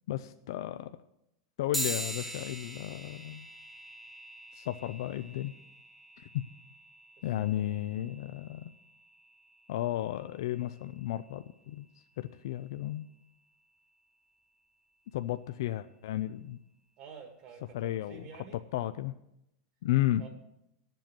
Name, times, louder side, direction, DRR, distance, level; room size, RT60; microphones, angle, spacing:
voice 1, 0.1-1.0 1.6-3.5 4.5-5.5 6.3-6.4 7.2-8.7 9.7-11.9 12.2-13.0 15.1-16.6 17.7-19.1 19.8-20.2, left 14 dB, 75° left, 10 dB, 0.5 m, -33 dB
sound 1, 1.7-11.6, right 1 dB, 5° right, 1.2 m, -43 dB
voice 2, 17.0-18.6 20.2-20.3, right 6 dB, 45° right, 4 dB, 1.7 m, -49 dB
11.0 x 7.7 x 9.0 m, 0.83 s
supercardioid pair, 150°, 2 cm